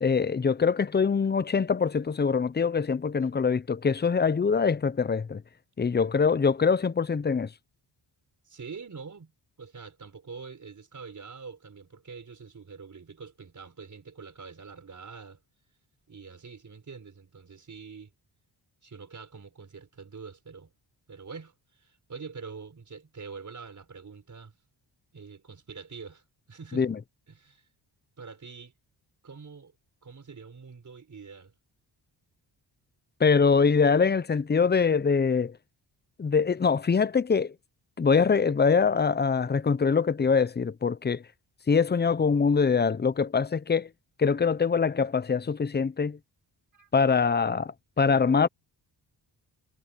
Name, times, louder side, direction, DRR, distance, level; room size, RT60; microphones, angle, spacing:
voice 1, 0.0-5.4 5.8-7.5 26.7-27.0 33.2-35.5 36.2-37.5 38.0-41.2 41.7-43.9 44.2-46.2 46.9-48.5, left 5 dB, 25° left, 0.7 m, -24 dB
voice 2, 8.5-9.3 9.6-15.4 16.1-18.1 18.8-20.7 21.1-24.5 25.1-26.9 27.3-27.7 28.2-28.7 29.2-29.7 30.0-31.5 46.7-46.9, right 5 dB, 40° right, 4.7 m, -45 dB
cardioid pair, 90°, 45 cm